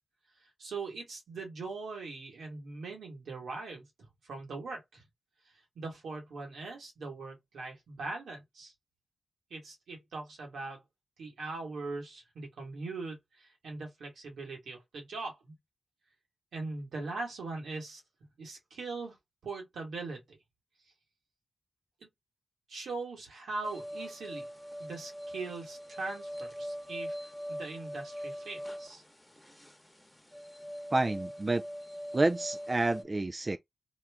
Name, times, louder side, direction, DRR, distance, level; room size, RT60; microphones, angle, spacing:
voice 1, 0.6-3.9 4.3-5.0 5.7-8.7 9.5-10.8 11.2-15.5 16.5-18.0 18.4-19.2 19.4-20.4 22.7-24.4 24.8-29.0, right 3 dB, 85° right, 1.4 m, -41 dB
sound 1, 23.6-33.0, equal, 15° left, 1.1 m, -42 dB
voice 2, 30.9-31.6 32.1-33.6, right 2 dB, 35° right, 0.3 m, -29 dB
2.9 x 2.4 x 3.4 m
cardioid pair, 45°, 0 cm